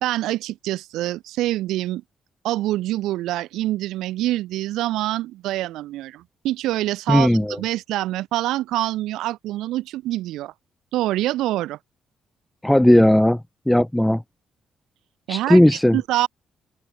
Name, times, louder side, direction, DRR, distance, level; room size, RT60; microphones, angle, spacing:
voice 1, 0.0-2.0 2.4-10.5 10.9-11.8 15.3-15.6 15.9-16.3, right 15 dB, 90° right, 1.2 m, -25 dB
voice 2, 7.1-7.6 12.6-13.4 13.7-14.2 15.3-16.0, left 1 dB, 5° left, 0.9 m, -16 dB
open air
cardioid pair, 90°, 0 cm